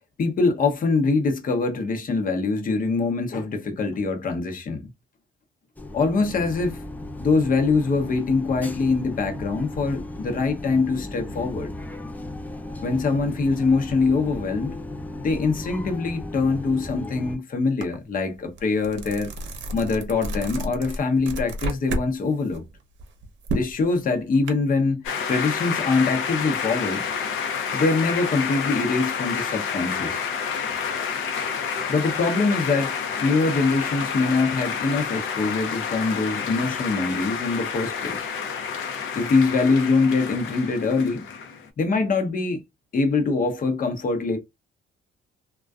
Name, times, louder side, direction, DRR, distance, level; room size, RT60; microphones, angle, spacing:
voice 1, 0.2-4.9 5.9-6.9 7.2-11.7 12.8-14.8 15.2-19.3 19.7-22.6 23.5-25.0 25.3-27.1 27.7-30.3 31.9-38.3 39.2-41.3 41.8-42.6 42.9-44.4, left 4 dB, 45° left, 0.7 m, -23 dB
sound 1, 5.8-17.4, left 1 dB, 10° left, 0.5 m, -36 dB
sound 2, 17.8-17.9 18.3-22.1 22.4-24.5, right 1 dB, 70° right, 0.7 m, -31 dB
sound 3, 25.0-41.7, left 6 dB, 85° left, 0.6 m, -29 dB
2.5 x 2.2 x 2.3 m
cardioid pair, 90°, 20 cm